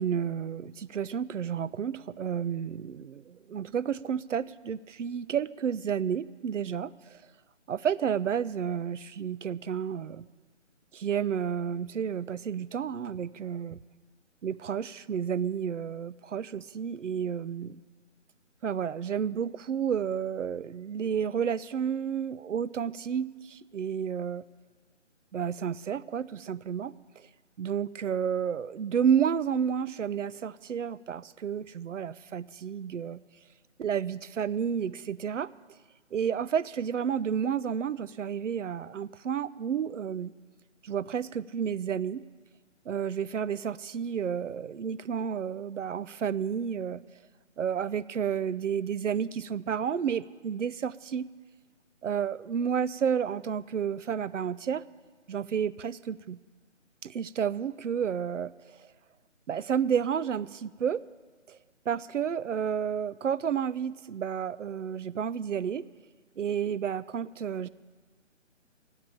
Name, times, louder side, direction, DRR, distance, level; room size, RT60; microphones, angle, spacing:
voice 1, 0.0-7.2 7.7-10.3 10.9-13.8 14.4-17.8 18.6-24.4 25.3-26.9 27.6-33.2 33.8-35.5 36.1-40.3 40.8-42.2 42.9-47.0 47.6-51.3 52.0-54.8 55.3-56.4 57.0-58.5 59.5-61.0 61.5-61.6 61.9-65.9 66.4-67.7, right 8 dB, 75° right, 17 dB, 0.5 m, -31 dB
13.0 x 8.2 x 8.6 m, 1.5 s
figure-of-eight pair, 150°, 38 cm